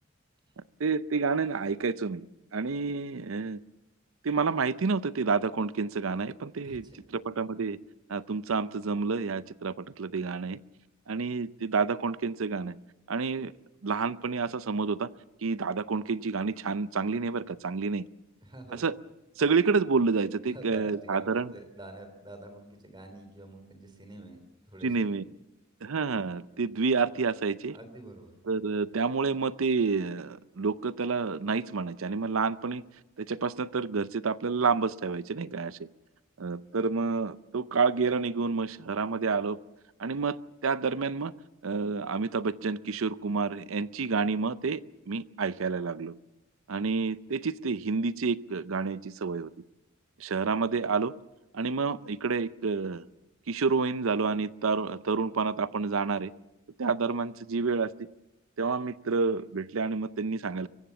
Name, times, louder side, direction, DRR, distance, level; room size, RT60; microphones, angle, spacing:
voice 1, 0.8-2.3 2.5-3.6 4.2-6.9 7.1-7.8 8.1-10.6 11.1-12.8 13.1-13.5 13.8-15.1 15.4-18.1 18.7-18.9 19.4-21.5 24.8-25.2 25.8-27.7 28.5-32.8 33.2-35.9 36.4-39.6 40.0-41.3 41.6-44.8 45.1-46.1 46.7-49.5 50.2-51.1 51.5-53.1 53.5-56.3 56.8-58.1 58.6-60.7, right 4 dB, 80° right, 0.6 m, -29 dB
voice 2, 6.6-7.0 18.4-18.8 20.4-24.4 24.7-25.1 27.7-28.3, right 2 dB, 25° right, 3.3 m, -47 dB
24.5 x 15.0 x 7.1 m
head